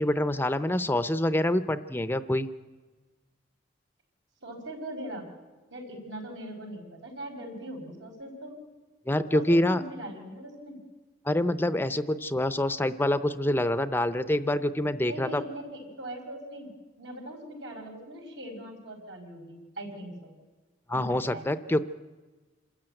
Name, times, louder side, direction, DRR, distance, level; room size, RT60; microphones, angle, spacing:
voice 1, 0.0-2.5 9.1-9.8 11.3-15.4 20.9-21.9, left 1 dB, 10° left, 13 dB, 0.6 m, -26 dB
voice 2, 4.4-5.3 5.7-8.5 9.3-10.8 15.0-16.7 17.0-20.3 20.9-21.5, right 1 dB, 75° right, 2 dB, 5.4 m, -40 dB
27.0 x 13.5 x 9.0 m, 1.3 s
head